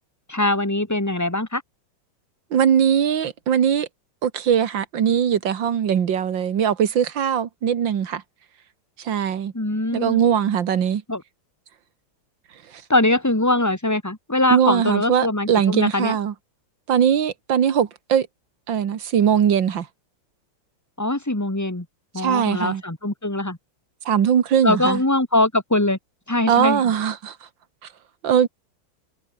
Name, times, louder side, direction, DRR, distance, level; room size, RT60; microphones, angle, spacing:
voice 1, 0.3-1.6 9.5-10.2 11.1-11.2 12.9-16.2 21.0-21.9 22.1-23.6 24.6-26.0 26.3-26.8, left 2 dB, 10° left, 2.6 m, -22 dB
voice 2, 2.5-3.9 4.2-8.2 9.0-9.5 9.9-11.0 14.5-16.3 16.9-18.3 18.7-19.9 22.2-22.8 24.1-25.0 26.5-27.4 28.2-28.5, right 8 dB, 65° right, 2.1 m, -20 dB
omnidirectional pair, 2.2 m